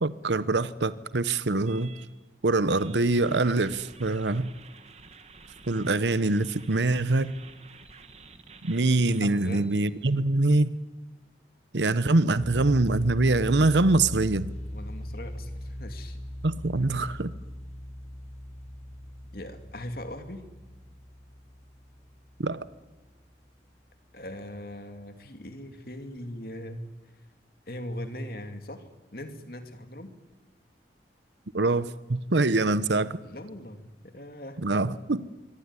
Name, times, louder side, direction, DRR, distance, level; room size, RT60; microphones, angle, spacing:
voice 1, 0.0-1.9 2.4-4.5 5.7-7.3 8.6-10.7 11.7-14.5 16.4-17.3 22.4-22.7 31.5-33.2 34.6-35.3, right 2 dB, 85° right, 15 dB, 0.9 m, -24 dB
sound 1, 1.7-2.1 2.7-10.2, right 4 dB, 35° right, 1.9 m, -51 dB
voice 2, 9.2-9.8 14.7-16.2 19.3-20.4 24.1-26.9 27.2-27.3 27.7-28.9 29.1-30.1 33.2-34.6, left 1 dB, 55° left, 7 dB, 2.7 m, -40 dB
sound 2, 12.4-23.3, equal, 40° left, 3.8 m, -40 dB
25.0 x 24.0 x 9.8 m, 1.2 s
head